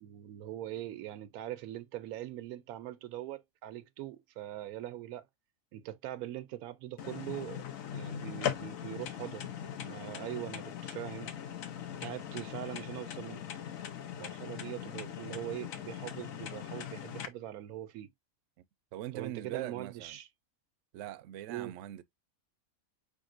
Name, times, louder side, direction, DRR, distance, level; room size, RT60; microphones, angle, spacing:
voice 1, 0.0-5.3 5.7-7.6 7.9-9.5 9.8-11.3 12.0-13.4 14.2-18.1 19.1-20.3 21.5-21.7, right 13 dB, 85° right, 1.1 m, -42 dB
sound 1, 7.0-17.3, left 9 dB, 70° left, 1.1 m, -40 dB
voice 2, 18.9-20.2 20.9-22.0, right 13 dB, 65° right, 0.8 m, -41 dB
5.2 x 3.6 x 2.5 m
omnidirectional pair, 1.5 m